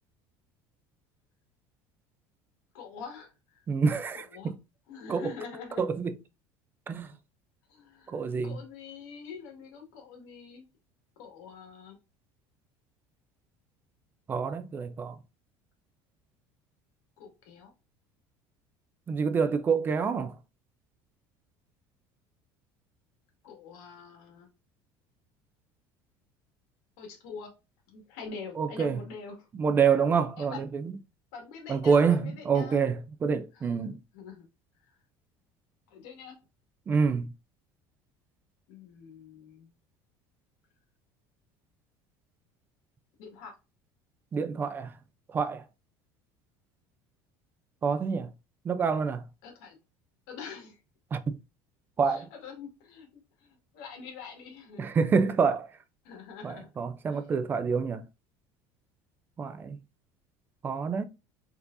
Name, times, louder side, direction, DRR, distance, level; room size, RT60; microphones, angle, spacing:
voice 1, 2.7-3.6 4.1-4.5 4.9-5.8 7.7-10.7 11.2-12.0 17.2-17.7 23.4-24.5 27.0-27.5 27.9-29.5 30.4-30.8 31.3-32.8 33.5-34.5 34.9-35.0 35.9-36.4 38.7-39.7 43.2-43.5 49.4-49.8 50.3-50.8 52.0-54.8 56.0-56.7 57.1-57.5, left 5 dB, 75° left, 1.9 m, -45 dB
voice 2, 3.7-4.2 5.1-5.3 5.8-6.1 6.9-7.1 8.1-8.6 14.3-15.1 19.1-20.3 28.6-29.0 29.6-30.6 31.7-34.0 36.9-37.3 44.3-44.9 45.3-45.6 47.8-48.3 48.7-49.2 51.1-51.4 52.0-52.3 54.8-55.7 56.4-58.0 59.4-59.8 60.6-61.0, right 5 dB, 20° right, 0.4 m, -27 dB
4.4 x 4.0 x 2.6 m
cardioid pair, 155°, 10 cm